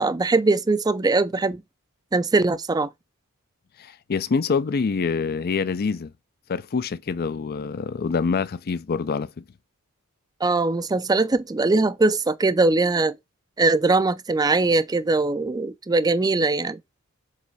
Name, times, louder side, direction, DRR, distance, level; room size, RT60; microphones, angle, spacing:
voice 1, 0.0-1.6 2.1-2.9 10.4-13.2 13.6-16.8, right 3 dB, 15° right, 0.4 m, -21 dB
voice 2, 3.8-6.1 6.5-9.4, left 5 dB, 45° left, 0.5 m, -26 dB
7.5 x 3.3 x 4.1 m
head